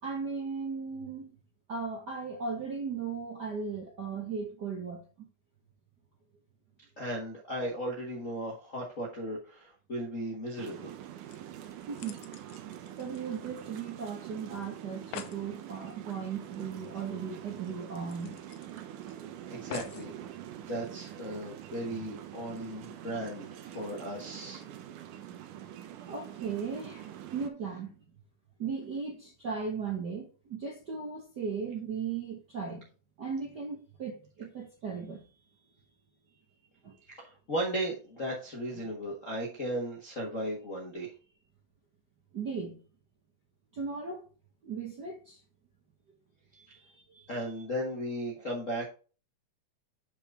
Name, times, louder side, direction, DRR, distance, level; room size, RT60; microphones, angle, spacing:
voice 1, 0.0-1.4 1.7-5.3 11.9-12.2 13.0-18.4 26.1-28.0 28.6-32.9 33.2-35.3 36.8-36.9 42.3-42.8 43.7-44.2 44.6-45.4 46.5-47.3, right 5 dB, 60° right, 1.1 m, -37 dB
voice 2, 7.0-10.9 19.5-20.1 20.6-24.6 37.1-41.1 47.3-48.8, equal, 50° left, 0.9 m, -36 dB
sound 1, 10.6-27.5, right 11 dB, 75° right, 2.3 m, -45 dB
sound 2, 10.9-11.0 11.3-13.9 14.2-14.3 14.6-14.7 14.9-15.4 16.9-17.0 17.4-17.5 18.1-19.1 19.7-20.1 20.8-20.9, left 10 dB, 80° left, 1.5 m, -46 dB
7.2 x 5.4 x 3.5 m
omnidirectional pair, 3.7 m